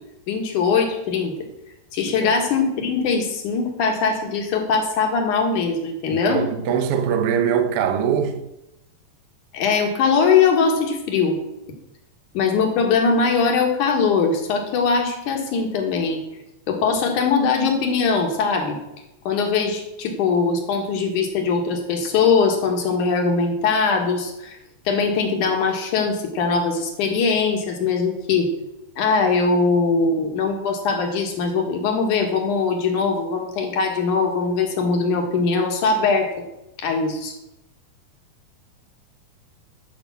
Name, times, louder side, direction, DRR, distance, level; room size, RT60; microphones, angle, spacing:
voice 1, 0.3-1.3 1.9-6.4 9.5-11.4 12.3-16.2 16.7-18.8 19.3-24.6 24.9-28.5 29.0-36.3 36.8-37.3, left 5 dB, 65° left, 3.0 m, -21 dB
voice 2, 6.1-8.5, right 8 dB, 70° right, 1.4 m, -22 dB
12.0 x 5.5 x 7.2 m
omnidirectional pair, 3.9 m